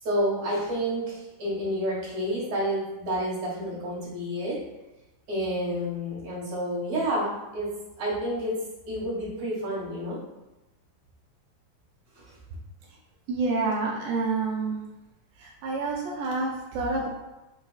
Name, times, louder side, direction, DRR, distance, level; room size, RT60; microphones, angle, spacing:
voice 1, 0.0-4.6 5.3-7.7 8.0-8.6 8.9-10.2 12.2-12.4, equal, 60° right, -7 dB, 2.4 m, -29 dB
voice 2, 13.3-14.8 15.4-17.1, right 3 dB, 80° right, -2 dB, 1.6 m, -28 dB
5.9 x 2.3 x 2.3 m, 1.0 s
omnidirectional pair, 3.7 m